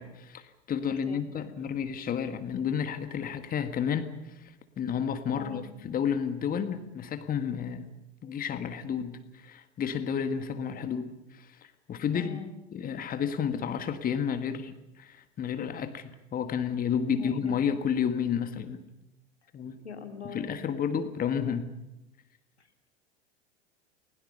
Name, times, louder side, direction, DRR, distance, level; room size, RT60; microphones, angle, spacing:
voice 1, 0.0-7.9 8.2-12.4 12.7-18.8 19.5-19.8 20.2-21.7, left 7 dB, 25° left, 10 dB, 1.7 m, -31 dB
voice 2, 0.9-1.6 5.3-5.7 12.1-12.6 16.9-17.7 19.8-20.5 22.6-22.9, left 6 dB, 80° left, 5 dB, 2.9 m, -43 dB
29.5 x 21.5 x 5.5 m, 0.89 s
figure-of-eight pair, 85°, 32 cm